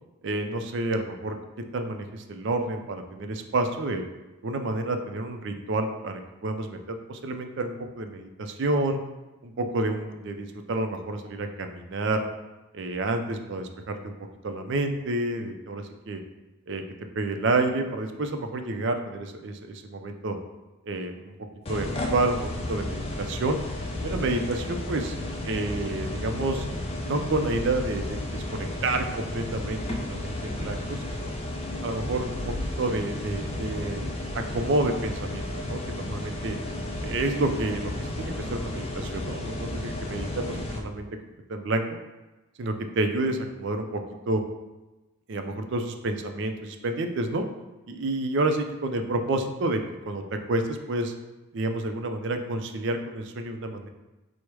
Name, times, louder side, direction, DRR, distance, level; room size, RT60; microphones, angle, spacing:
voice 1, 0.2-1.4 1.7-4.0 4.4-9.0 9.4-12.2 12.7-14.1 14.4-16.2 16.7-16.8 17.1-20.4 20.8-21.3 21.7-22.4 22.7-23.6 24.0-25.1 25.4-26.6 27.0-31.3 31.8-34.1 34.5-36.6 37.0-41.1 41.5-41.8 42.6-44.0 44.3-44.4 45.3-47.4 47.9-51.1 51.5-53.9, right 2 dB, 55° right, 6 dB, 0.4 m, -29 dB
sound 1, 21.7-40.8, left 1 dB, 25° left, 0.4 m, -33 dB
4.6 x 2.1 x 4.6 m, 1.1 s
head